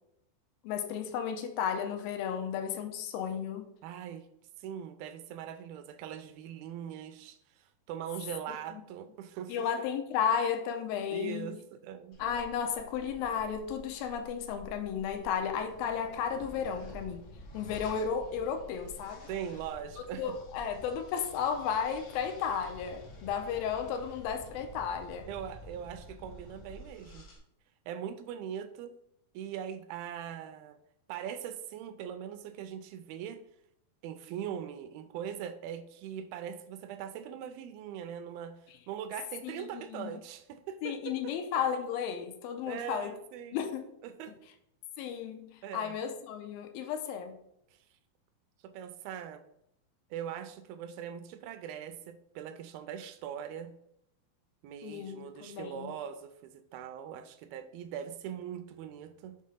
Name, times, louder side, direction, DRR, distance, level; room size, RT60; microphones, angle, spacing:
voice 1, 0.6-3.7 9.5-11.6 12.2-17.2 17.5-19.3 20.2-25.3 39.4-40.2 40.8-43.1 43.5-43.9 45.0-47.4 54.8-55.9, left 7 dB, 80° left, 7 dB, 2.4 m, -34 dB
voice 2, 3.8-4.3 4.6-9.9 11.1-12.2 19.3-20.2 25.3-27.3 27.9-28.9 29.3-30.8 31.1-33.4 34.0-41.4 42.7-43.6 44.0-44.3 45.6-46.0 47.7-47.8 48.6-49.4 50.1-53.7 54.6-59.4, right 9 dB, 80° right, 10 dB, 2.3 m, -41 dB
sound 1, 12.1-27.4, equal, 65° left, 1.3 m, -50 dB
6.3 x 3.8 x 5.5 m, 0.76 s
omnidirectional pair, 4.4 m